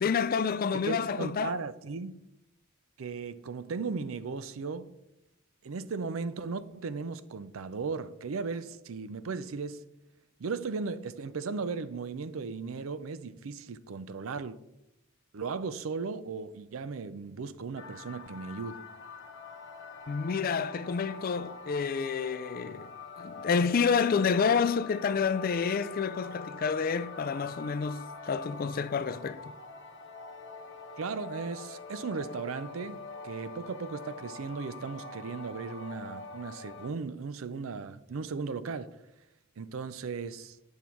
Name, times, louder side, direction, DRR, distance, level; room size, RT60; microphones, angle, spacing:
voice 1, 0.0-1.6 20.1-29.4, left 6 dB, 45° left, 0.4 m, -29 dB
voice 2, 0.8-2.1 3.0-4.9 5.6-9.8 10.4-14.6 15.3-18.8 31.0-33.0 33.2-39.0 39.6-40.6, right 4 dB, 80° right, 0.5 m, -36 dB
sound 1, 17.8-36.9, left 4 dB, 60° left, 1.0 m, -45 dB
8.3 x 5.5 x 4.4 m
head